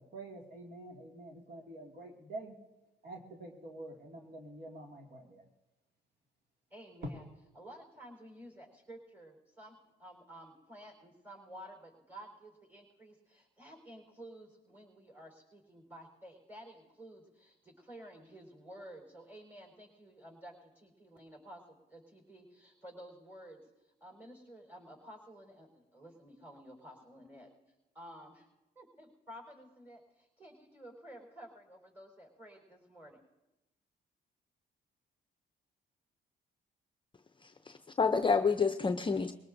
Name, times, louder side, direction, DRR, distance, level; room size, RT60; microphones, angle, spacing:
voice 1, 0.0-2.5 3.0-5.4, right 2 dB, 55° right, -1 dB, 2.4 m, -47 dB
voice 2, 6.7-7.3 7.5-27.5 27.9-28.5 28.7-33.2, right 1 dB, 10° right, 0 dB, 4.5 m, -52 dB
voice 3, 37.4-39.3, left 5 dB, 25° left, 7 dB, 0.6 m, -29 dB
21.5 x 18.0 x 2.7 m, 1.0 s
cardioid pair, 90°, 20 cm